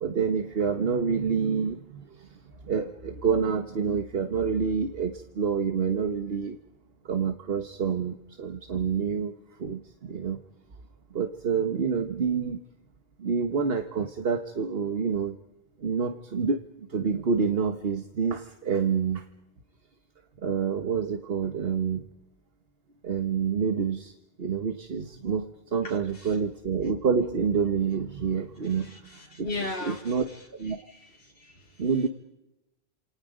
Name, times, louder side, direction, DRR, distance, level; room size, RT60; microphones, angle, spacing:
voice 1, 0.0-1.8 2.7-6.5 7.1-9.3 9.6-10.4 11.1-12.6 13.2-15.3 15.8-16.6 16.9-19.2 20.4-22.0 23.0-24.1 24.4-25.5 25.7-28.9 29.4-29.5 29.8-30.2 30.6-30.8 31.8-32.1, right 6 dB, 65° right, 7 dB, 1.5 m, -27 dB
voice 2, 25.8-26.4 28.7-30.4 30.7-31.8, left 2 dB, 65° left, -3 dB, 3.3 m, -38 dB
29.0 x 28.0 x 5.2 m, 0.93 s
omnidirectional pair, 1.1 m